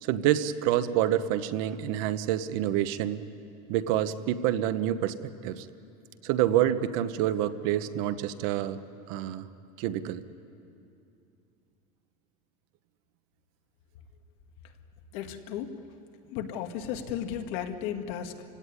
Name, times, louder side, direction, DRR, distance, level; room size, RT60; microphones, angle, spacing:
voice 1, 0.0-3.2 3.7-5.2 5.4-5.7 6.2-8.8 9.1-9.5 9.8-10.2, right 11 dB, 60° right, 12 dB, 1.0 m, -27 dB
voice 2, 15.1-15.8 16.3-18.4, left 9 dB, 65° left, 6 dB, 1.8 m, -34 dB
29.5 x 17.0 x 9.8 m, 2.7 s
cardioid pair, 165°, 19 cm